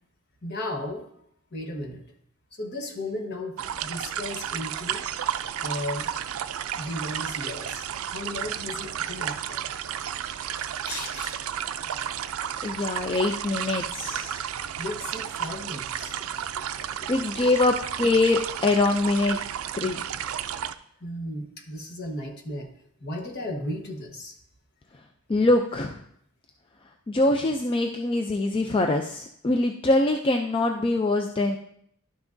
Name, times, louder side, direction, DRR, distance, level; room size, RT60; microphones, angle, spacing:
voice 1, 0.4-1.2 1.5-2.0 2.6-5.0 5.6-6.1 6.8-9.7 10.6-11.4 14.8-16.2 17.4-17.5 21.0-22.7 23.0-24.3, left 1 dB, 50° left, 2 dB, 1.2 m, -35 dB
sound 1, 3.6-20.7, right 9 dB, 70° right, 0.4 m, -32 dB
voice 2, 12.6-14.5 17.0-19.4 19.8-20.0 25.3-26.0 27.1-31.6, left 2 dB, 25° left, 4 dB, 0.4 m, -24 dB
11.5 x 5.9 x 2.6 m, 0.69 s
head